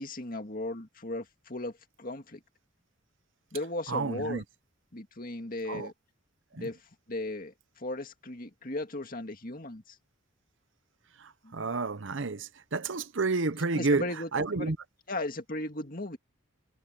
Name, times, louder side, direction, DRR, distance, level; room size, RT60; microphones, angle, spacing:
voice 1, 0.0-2.4 3.5-4.4 4.9-5.9 6.6-6.8 7.1-10.0 11.4-11.6 13.7-14.3 14.5-14.7 15.1-16.2, left 2 dB, 40° left, 2.3 m, -36 dB
voice 2, 3.9-4.4 5.7-5.9 6.5-6.7 11.2-14.8, right 3 dB, 60° right, 0.8 m, -30 dB
head